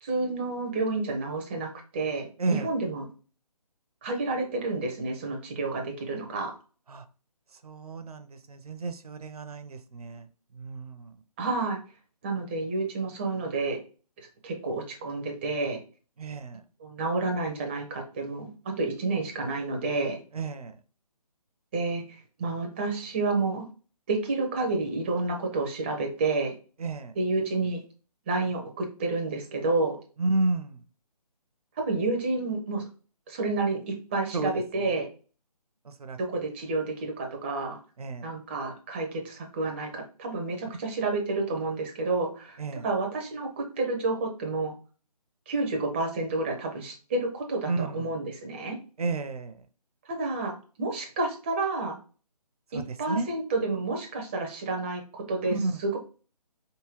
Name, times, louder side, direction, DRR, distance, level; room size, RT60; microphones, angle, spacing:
voice 1, 0.0-3.0 4.0-6.5 11.4-11.8 12.2-13.8 14.4-15.8 16.8-18.5 18.8-20.2 21.7-22.0 22.4-23.6 24.1-26.5 27.2-27.8 28.3-30.0 31.8-32.9 33.3-35.1 36.2-37.8 38.2-44.7 45.5-48.8 50.1-52.0 52.7-55.5 55.8-56.0, right 3 dB, 20° right, 0.5 m, -30 dB
voice 2, 2.4-2.7 6.9-7.0 7.6-10.3 10.5-11.1 16.2-16.6 20.3-20.8 26.8-27.2 30.2-30.8 34.3-35.0 35.8-36.2 38.0-38.3 42.6-42.9 47.7-48.1 49.0-49.6 52.7-53.3 55.5-55.8, right 3 dB, 65° right, 0.5 m, -32 dB
3.6 x 2.7 x 3.0 m
figure-of-eight pair, 145°, 20 cm